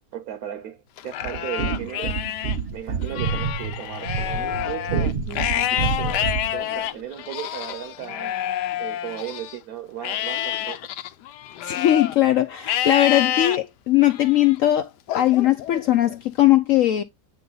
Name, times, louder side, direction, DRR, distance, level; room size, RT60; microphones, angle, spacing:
voice 1, 0.1-2.2 2.7-8.3 8.8-10.8, right 11 dB, 65° right, 1.1 m, -35 dB
Livestock farm animals working animals, 1.0-2.6 3.0-9.6 10.0-12.2 12.6-13.6 14.1-14.5 15.1-16.2, left 12 dB, 85° left, 1.2 m, -28 dB
sound 1, 1.2-6.6, right 5 dB, 45° right, 0.9 m, -28 dB
voice 2, 11.6-17.0, left 13 dB, 65° left, 0.8 m, -19 dB
8.6 x 3.4 x 3.9 m
omnidirectional pair, 1.8 m